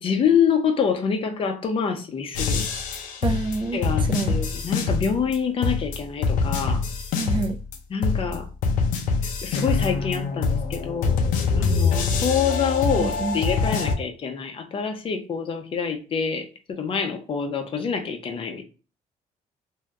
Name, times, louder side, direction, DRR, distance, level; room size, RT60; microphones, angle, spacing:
voice 1, 0.0-2.7 3.7-6.8 7.9-8.5 9.2-11.2 11.6-18.6, left 6 dB, 45° left, 5 dB, 0.7 m, -26 dB
sound 1, 2.3-5.4 5.6-7.8 8.0-13.9, left 4 dB, 90° left, 0.6 m, -24 dB
voice 2, 2.9-4.4 7.1-7.6 13.0-13.4, right 3 dB, 35° right, 5 dB, 0.7 m, -28 dB
3.3 x 2.7 x 2.3 m, 0.33 s
cardioid pair, 105°, 13 cm